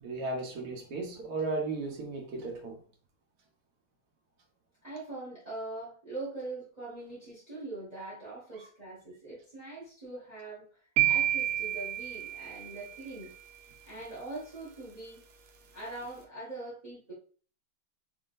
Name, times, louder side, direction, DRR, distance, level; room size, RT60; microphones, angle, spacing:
voice 1, 0.0-2.8 8.6-8.7, right 3 dB, 55° right, 1.4 m, -35 dB
voice 2, 4.8-10.8 11.0-13.3 13.8-15.2 15.7-17.1, right 2 dB, 20° right, 1.3 m, -42 dB
sound 1, 11.0-13.1, right 13 dB, 85° right, 1.5 m, -29 dB
4.3 x 3.6 x 2.5 m
omnidirectional pair, 2.2 m